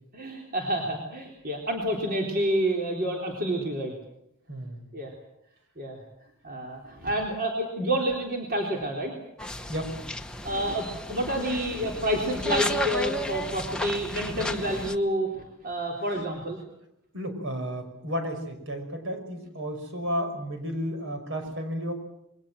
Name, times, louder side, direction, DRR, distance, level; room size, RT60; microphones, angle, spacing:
voice 1, 0.1-3.9 4.9-5.1 5.8-6.0 6.4-9.1 10.4-16.6, right 1 dB, 45° right, 0 dB, 3.7 m, -29 dB
voice 2, 4.5-4.9 9.7-9.9 17.1-21.9, equal, 60° right, 6 dB, 5.5 m, -32 dB
sound 1, 9.4-15.0, left 1 dB, 5° left, 1.0 m, -33 dB
27.5 x 22.0 x 7.6 m, 0.80 s
head